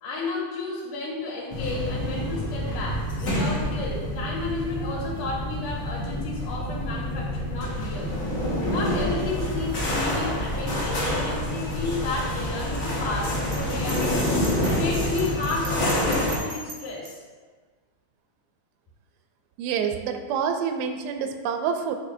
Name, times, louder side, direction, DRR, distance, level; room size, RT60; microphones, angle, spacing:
voice 1, 0.0-8.1 8.7-14.4 14.7-17.2, left 3 dB, 85° left, -6 dB, 3.1 m, -32 dB
sound 1, 1.5-16.4, left 1 dB, 50° left, 1.0 m, -27 dB
Bell, 13.5-17.1, right 2 dB, 60° right, 1.3 m, -39 dB
voice 2, 19.6-22.0, right 7 dB, 90° right, 6 dB, 2.4 m, -27 dB
9.3 x 4.7 x 2.6 m, 1.4 s
omnidirectional pair, 4.2 m